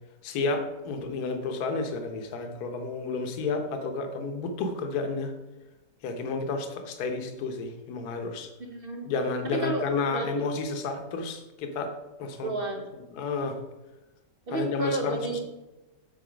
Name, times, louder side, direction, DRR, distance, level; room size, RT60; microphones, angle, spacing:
voice 1, 0.2-5.3 6.0-8.5 9.1-11.9 12.2-12.5 13.1-13.6 14.5-15.2, left 4 dB, 65° left, 6 dB, 1.3 m, -31 dB
voice 2, 8.6-9.1 9.4-10.5 12.4-12.9 14.5-15.4, right 3 dB, 60° right, 2 dB, 0.6 m, -32 dB
7.9 x 4.0 x 5.0 m, 1.1 s
omnidirectional pair, 1.9 m